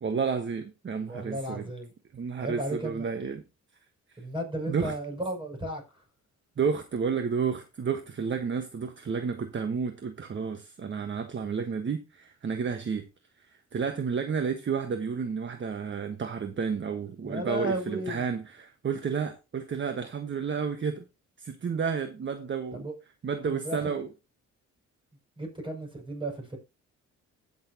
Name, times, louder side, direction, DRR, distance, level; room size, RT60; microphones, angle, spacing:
voice 1, 0.0-1.7 2.1-3.4 4.1-4.2 4.7-4.9 6.6-13.0 13.7-21.0 21.4-22.9 23.2-24.1, right 6 dB, 40° right, 1.3 m, -31 dB
voice 2, 1.1-1.9 2.4-3.0 4.2-5.8 17.2-18.3 22.7-22.9 23.4-23.9 25.4-26.6, right 1 dB, 15° right, 6.1 m, -34 dB
15.5 x 6.7 x 2.8 m
cardioid pair, 90°, 30 cm